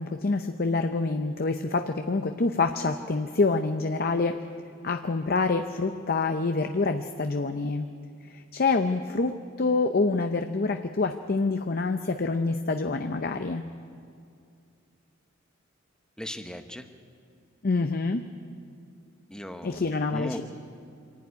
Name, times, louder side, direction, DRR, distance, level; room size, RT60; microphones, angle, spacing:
voice 1, 0.0-4.4 4.8-7.9 8.3-13.6 17.6-18.3 19.6-20.4, left 3 dB, 45° left, 7 dB, 0.6 m, -26 dB
voice 2, 16.2-16.9 19.3-20.4, equal, 5° left, 7 dB, 0.9 m, -37 dB
25.0 x 11.5 x 9.4 m, 2.4 s
head